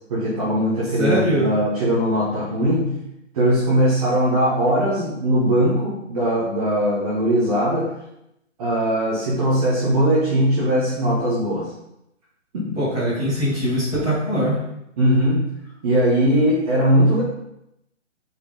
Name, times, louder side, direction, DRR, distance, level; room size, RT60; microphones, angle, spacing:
voice 1, 0.1-2.9 3.3-7.9 8.6-11.7 12.5-12.6 15.0-15.4 15.8-17.2, right 1 dB, 30° right, -8 dB, 1.8 m, -20 dB
voice 2, 1.0-1.5 12.8-14.6, equal, 10° right, -11 dB, 2.7 m, -21 dB
6.8 x 4.9 x 3.8 m, 0.81 s
figure-of-eight pair, 140°, 38 cm